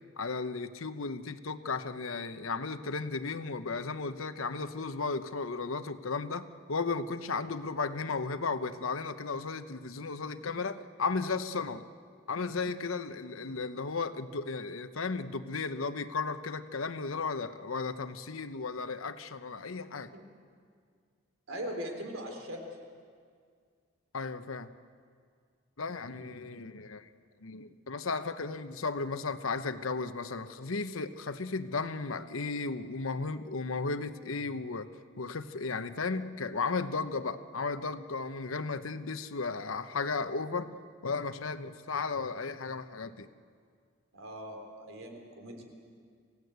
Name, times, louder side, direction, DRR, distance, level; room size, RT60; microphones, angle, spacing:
voice 1, 0.2-11.8 12.3-20.1 24.1-24.7 25.8-27.1 27.4-34.9 35.2-40.7 41.0-43.3, left 4 dB, 80° left, 11 dB, 0.9 m, -35 dB
voice 2, 21.5-22.6 44.1-45.6, equal, 80° right, 3 dB, 3.6 m, -40 dB
27.0 x 16.5 x 8.0 m, 2.1 s
head